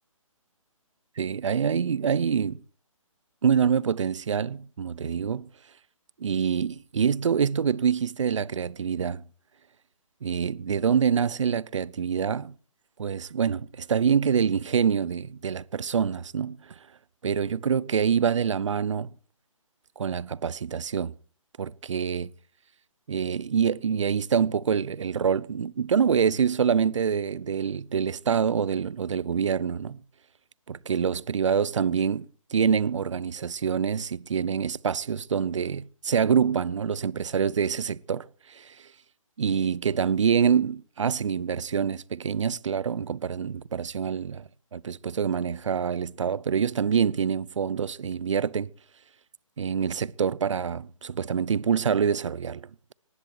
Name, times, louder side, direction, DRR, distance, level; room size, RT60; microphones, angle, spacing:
voice 1, 1.2-2.6 3.4-5.5 6.2-9.2 10.2-12.5 13.0-16.7 17.2-19.1 20.0-21.1 21.6-22.3 23.1-30.0 30.7-38.9 39.4-48.7 49.6-52.9, right 7 dB, 60° right, 0.8 m, -26 dB
19.0 x 15.0 x 4.8 m
hypercardioid pair, 155°, 18 cm